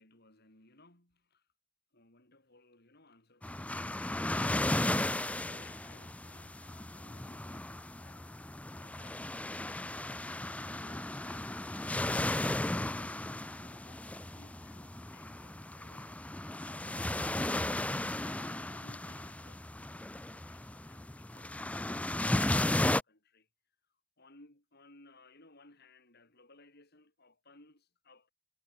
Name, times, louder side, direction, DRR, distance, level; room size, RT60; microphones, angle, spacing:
voice 1, 0.0-1.5 1.9-4.0 4.3-4.9 5.3-8.3 8.8-10.0 10.6-16.2 16.6-20.0 20.3-23.5 24.2-28.3, left 2 dB, 50° left, 7.1 m, -61 dB
sound 1, 3.4-23.0, left 1 dB, 5° left, 0.4 m, -35 dB
head